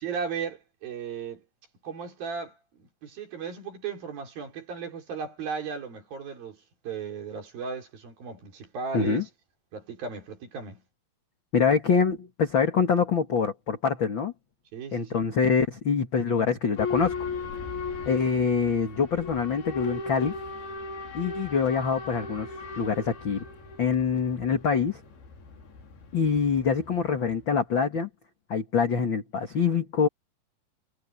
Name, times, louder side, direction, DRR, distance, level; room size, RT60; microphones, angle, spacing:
voice 1, 0.0-1.4 1.8-6.6 6.8-9.2 9.7-10.8 14.7-15.3, right 5 dB, 65° right, 5.8 m, -36 dB
voice 2, 8.9-9.2 11.5-14.3 14.9-17.2 18.1-20.4 21.1-22.5 22.8-23.4 23.8-25.0 26.1-28.1 28.5-30.1, left 6 dB, 45° left, 1.8 m, -25 dB
Boat Water vehicle / Alarm, 16.8-27.4, left 4 dB, 75° left, 5.8 m, -37 dB
omnidirectional pair, 4.6 m